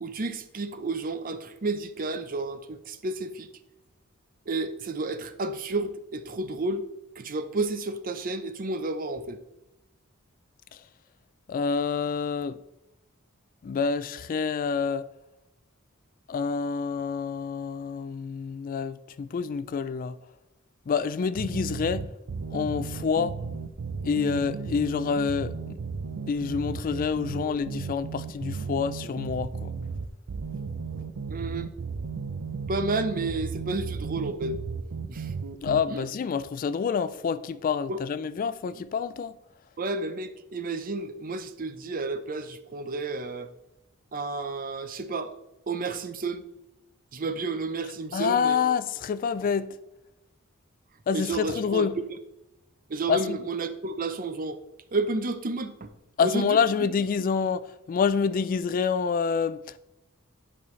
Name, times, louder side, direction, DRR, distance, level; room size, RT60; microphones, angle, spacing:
voice 1, 0.0-3.5 4.5-6.9 7.2-9.4 31.3-31.7 32.7-34.6 35.1-35.3 35.9-36.0 37.9-38.0 39.8-43.5 44.1-45.4 45.7-46.4 47.1-48.6 51.1-51.9 52.9-54.6 54.9-55.9 56.2-56.6, right 3 dB, 40° right, 0.6 m, -31 dB
voice 2, 11.5-12.6 13.6-15.1 16.3-20.2 20.9-22.1 22.5-23.4 24.0-25.8 26.3-29.7 35.6-39.4 48.1-49.8 51.1-51.9 53.1-53.4 56.2-59.8, left 6 dB, 40° left, 0.3 m, -27 dB
sound 1, 21.4-35.8, right 5 dB, 85° right, 0.5 m, -35 dB
10.5 x 5.4 x 3.2 m
head